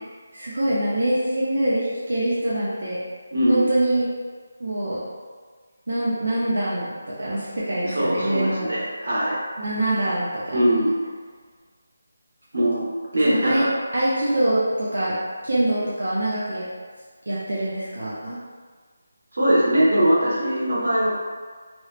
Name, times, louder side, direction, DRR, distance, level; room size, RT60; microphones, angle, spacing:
voice 1, 0.3-3.0 3.5-4.1 4.6-5.0 5.9-8.7 9.6-10.6 13.3-13.7 13.9-15.2 15.4-16.6 17.3-18.4, right 1 dB, 80° right, -8 dB, 0.6 m, -24 dB
voice 2, 3.3-3.6 7.8-9.4 10.5-11.0 12.5-13.7 19.3-21.1, right 1 dB, 55° right, -7 dB, 0.8 m, -21 dB
3.0 x 2.0 x 2.4 m, 1.6 s
figure-of-eight pair, 180°, 0 cm